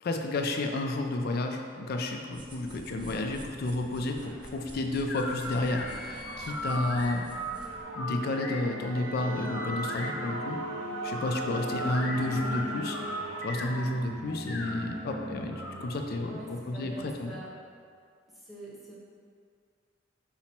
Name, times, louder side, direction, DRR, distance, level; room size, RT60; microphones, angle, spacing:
voice 1, 0.0-7.3 7.9-10.6 11.0-13.0 13.4-17.4, left 2 dB, 55° left, 3 dB, 0.4 m, -31 dB
sound 1, 2.3-7.8, right 1 dB, 25° right, 0.4 m, -48 dB
sound 2, 3.8-17.3, right 1 dB, 80° right, 0.6 m, -40 dB
sound 3, 5.1-9.0 9.4-11.3 11.7-13.8 14.3-15.7, equal, 80° left, 0.8 m, -38 dB
voice 2, 16.3-17.5 18.3-19.0, right 2 dB, ahead, -8 dB, 0.8 m, -44 dB
5.7 x 2.0 x 4.2 m, 2.1 s
head